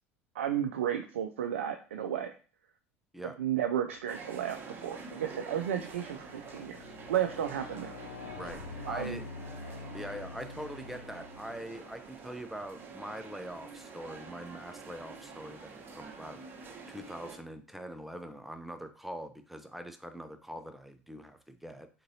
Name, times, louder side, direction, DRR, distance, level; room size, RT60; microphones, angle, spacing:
voice 1, 0.4-2.3 3.4-8.0 8.9-9.2, right 10 dB, 75° right, 5 dB, 0.4 m, -33 dB
sound 1, 4.0-4.3 4.9-11.8, left 4 dB, 75° left, 0.5 m, -47 dB
sound 2, 4.1-17.4, right 4 dB, 35° right, 0.9 m, -47 dB
voice 2, 8.9-9.2 9.9-21.9, equal, ahead, 8 dB, 0.5 m, -43 dB
3.9 x 3.7 x 2.7 m, 0.37 s
figure-of-eight pair, 70°, 7 cm